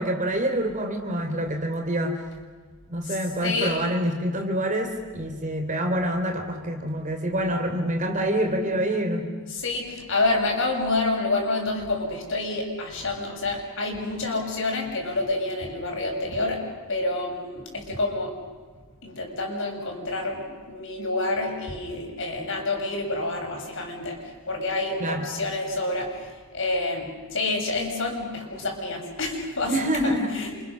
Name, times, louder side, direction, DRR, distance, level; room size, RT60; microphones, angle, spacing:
voice 1, 0.0-2.2 2.9-9.3 25.0-25.3 29.7-30.4, right 1 dB, 35° right, 5 dB, 3.5 m, -26 dB
voice 2, 3.4-3.8 9.5-16.6 16.9-18.4 19.0-30.6, left 2 dB, 60° left, 1 dB, 6.6 m, -28 dB
29.5 x 26.5 x 6.4 m, 1.5 s
head